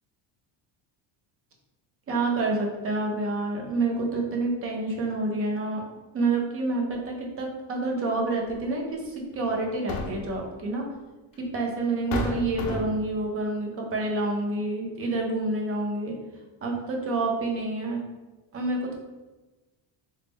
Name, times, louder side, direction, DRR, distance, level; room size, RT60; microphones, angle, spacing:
voice 1, 2.1-5.8 6.1-10.8 11.4-16.1 16.6-18.0 18.5-18.9, right 2 dB, 30° right, 0 dB, 0.5 m, -28 dB
sound 1, 8.5-8.6 9.6-10.4 11.4-11.5 12.1-13.1, left 2 dB, 55° left, 0.6 m, -31 dB
4.0 x 2.1 x 3.5 m, 1.2 s
cardioid pair, 175°, 49 cm